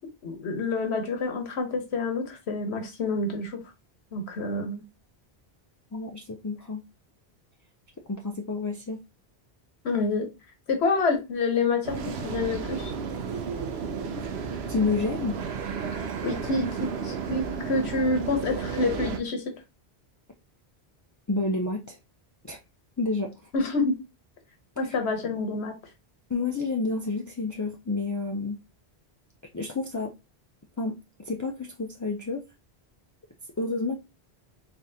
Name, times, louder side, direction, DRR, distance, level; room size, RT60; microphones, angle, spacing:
voice 1, 0.2-3.6 4.1-4.8 9.8-10.3 10.7-12.9 15.9-19.4 23.5-24.0 24.8-25.7, left 3 dB, 80° left, 5 dB, 1.3 m, -28 dB
voice 2, 5.9-6.8 8.1-9.0 14.7-15.4 21.3-22.0 22.4-22.6 23.0-23.5 24.9-25.0 26.3-28.6 29.5-30.1 30.8-32.4 33.6-33.9, left 3 dB, 30° left, 1 dB, 0.3 m, -29 dB
sound 1, 11.8-19.2, right 5 dB, 75° right, 0.9 m, -32 dB
4.1 x 3.6 x 2.7 m, 0.25 s
omnidirectional pair, 1.1 m